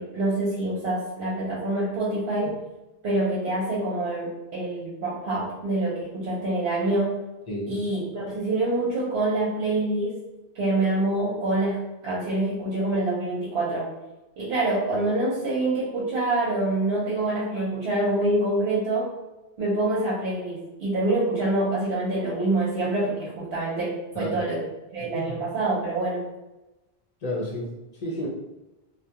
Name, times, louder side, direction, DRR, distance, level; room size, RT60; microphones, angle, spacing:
voice 1, 0.0-2.6 3.0-7.2 7.7-10.2 10.5-13.9 14.4-19.1 19.6-24.6 24.9-26.2, right 2 dB, 70° right, -5 dB, 0.9 m, -26 dB
voice 2, 7.5-7.8 24.1-24.4 25.1-25.3 27.2-28.3, left 1 dB, 55° left, -4 dB, 0.5 m, -31 dB
2.2 x 2.1 x 2.7 m, 0.99 s
omnidirectional pair, 1.0 m